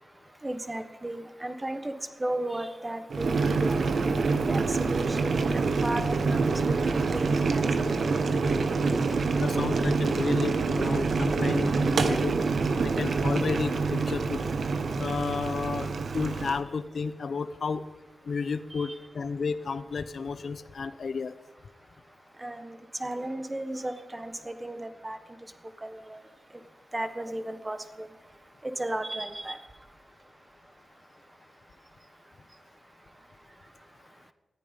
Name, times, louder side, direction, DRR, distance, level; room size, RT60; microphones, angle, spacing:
voice 1, 0.4-1.9 2.2-3.8 4.5-6.0 6.3-6.7 7.1-7.9 18.7-18.9 22.4-25.2 25.8-26.2 26.9-28.1 28.8-29.6, right 1 dB, 15° right, 9 dB, 1.4 m, -35 dB
Boiling, 3.1-16.6, right 4 dB, 60° right, 1.3 m, -26 dB
voice 2, 9.4-12.4 12.8-14.4 15.0-17.8 18.3-21.3, left 5 dB, 60° left, 13 dB, 0.8 m, -32 dB
19.0 x 14.0 x 5.4 m, 1.2 s
wide cardioid pair, 120°, 0 cm